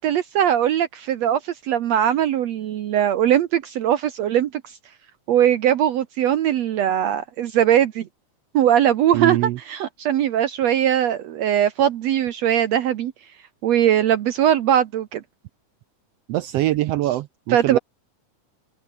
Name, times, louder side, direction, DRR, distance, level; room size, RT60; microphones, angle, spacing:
voice 1, 0.0-4.6 5.3-8.1 8.5-13.1 13.6-15.2 17.5-17.8, right 10 dB, 65° right, 2.1 m, -20 dB
voice 2, 9.1-9.6 16.3-17.8, right 15 dB, 85° right, 1.4 m, -23 dB
open air
omnidirectional pair, 3.4 m